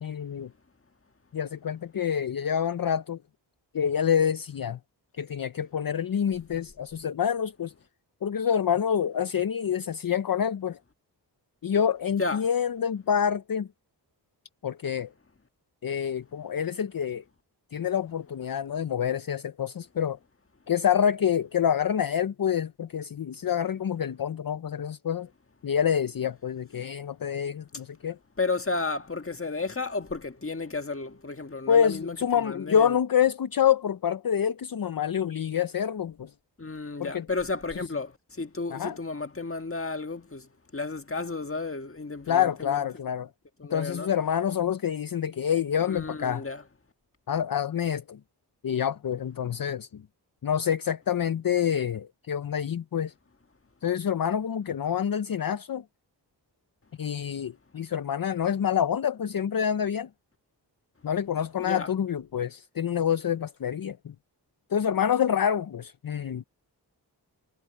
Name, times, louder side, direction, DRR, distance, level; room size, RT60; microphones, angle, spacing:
voice 1, 0.0-0.5 1.3-3.2 3.7-4.8 5.2-7.7 8.2-10.8 11.6-13.7 14.6-15.1 15.8-17.2 17.7-20.2 20.7-25.3 25.6-28.2 31.7-36.3 37.0-37.3 37.7-37.8 38.7-39.0 42.3-43.3 43.7-46.5 47.3-48.2 48.6-50.0 50.4-53.1 53.8-55.8 57.0-60.1 61.0-64.1 64.7-66.4, left 8 dB, 55° left, 0.6 m, -27 dB
voice 2, 28.4-33.0 36.6-42.8 43.6-44.1 45.9-46.6 61.6-61.9, left 3 dB, 30° left, 1.6 m, -33 dB
wide cardioid pair, 80°, 41 cm